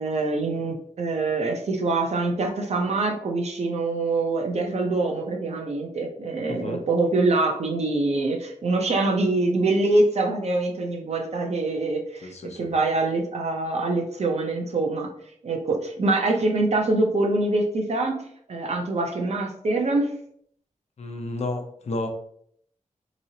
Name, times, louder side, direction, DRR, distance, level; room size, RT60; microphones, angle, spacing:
voice 1, 0.0-15.1 15.4-18.2 18.5-20.1, right 2 dB, 55° right, 2 dB, 0.7 m, -24 dB
voice 2, 6.5-6.8 12.2-12.7 21.0-22.1, left 2 dB, 60° left, 4 dB, 0.6 m, -32 dB
3.8 x 3.0 x 2.8 m, 0.66 s
wide cardioid pair, 135°, 13 cm